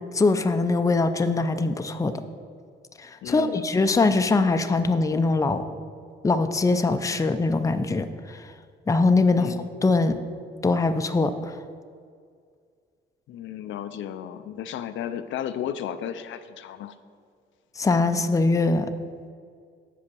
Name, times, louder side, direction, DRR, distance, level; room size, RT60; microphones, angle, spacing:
voice 1, 0.1-2.1 3.0-5.6 6.2-8.4 8.9-10.2 10.6-11.6 17.8-18.9, left 3 dB, 15° left, 8 dB, 0.5 m, -22 dB
voice 2, 3.2-3.7 9.4-9.6 13.3-16.9, left 10 dB, 75° left, 10 dB, 0.5 m, -34 dB
6.9 x 5.3 x 6.8 m, 2.1 s
cardioid pair, 90°, 20 cm